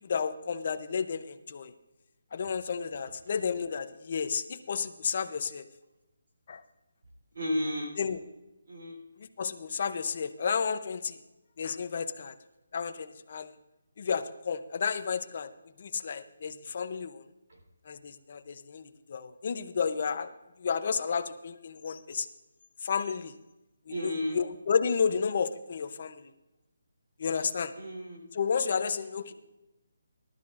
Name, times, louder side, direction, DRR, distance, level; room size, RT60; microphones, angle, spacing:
voice 1, 0.0-1.7 2.3-5.7 6.5-6.6 8.0-8.2 9.2-11.2 11.6-12.3 12.7-13.5 14.0-15.5 15.8-17.2 17.9-20.3 20.6-22.3 22.8-23.3 23.9-26.2 27.2-27.7 28.3-29.3, left 6 dB, 30° left, 9 dB, 0.6 m, -32 dB
voice 2, 7.3-8.0 8.7-9.0 23.9-24.4 27.8-28.2, left 1 dB, 45° right, 0 dB, 3.7 m, -33 dB
19.0 x 12.5 x 2.5 m, 0.99 s
hypercardioid pair, 180°, 0 cm